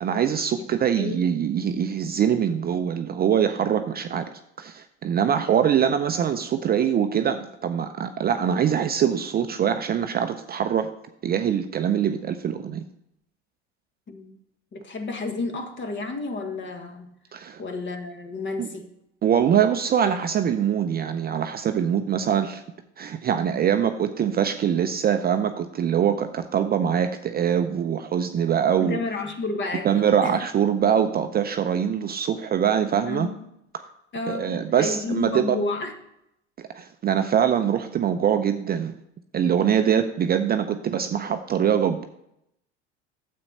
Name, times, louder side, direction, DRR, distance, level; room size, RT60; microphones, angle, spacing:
voice 1, 0.0-4.3 4.6-10.9 11.2-12.8 17.3-17.6 18.6-18.7 19.2-22.6 23.0-29.0 29.8-33.3 33.7-33.8 34.3-35.6 36.6-39.0 39.3-42.1, right 8 dB, 25° right, 8 dB, 0.5 m, -23 dB
voice 2, 14.7-17.1 17.6-18.9 28.8-30.3 33.1-33.3 34.1-35.9, left 3 dB, 30° left, 6 dB, 1.6 m, -31 dB
9.6 x 7.7 x 4.2 m, 0.80 s
hypercardioid pair, 80°, 35 cm